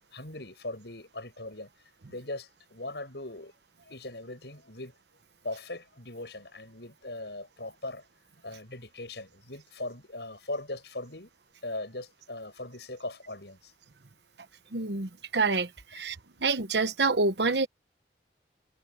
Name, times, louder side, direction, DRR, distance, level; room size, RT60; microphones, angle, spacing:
voice 1, 0.1-1.7 2.1-3.5 3.8-4.9 5.4-8.0 8.4-11.3 11.6-13.7, left 2 dB, 70° left, 7.9 m, -39 dB
voice 2, 14.7-16.2 16.4-17.7, right 3 dB, 75° right, 1.1 m, -27 dB
head